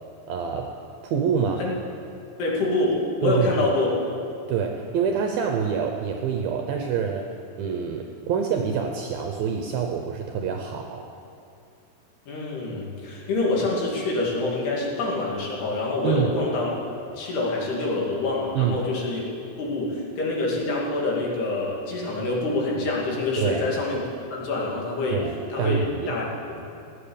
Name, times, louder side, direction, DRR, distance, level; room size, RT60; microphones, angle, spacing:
voice 1, 0.3-0.7 1.0-1.6 3.2-3.5 4.5-7.3 7.6-11.1 16.0-16.3 18.5-18.8 23.4-23.7 25.1-26.2, right 7 dB, 75° right, 3 dB, 2.2 m, -26 dB
voice 2, 2.4-3.9 12.3-19.2 19.6-24.0 24.3-25.2 25.5-25.8 26.1-26.6, left 2 dB, 65° left, -3 dB, 4.4 m, -26 dB
17.0 x 9.3 x 8.8 m, 2.6 s
omnidirectional pair, 5.1 m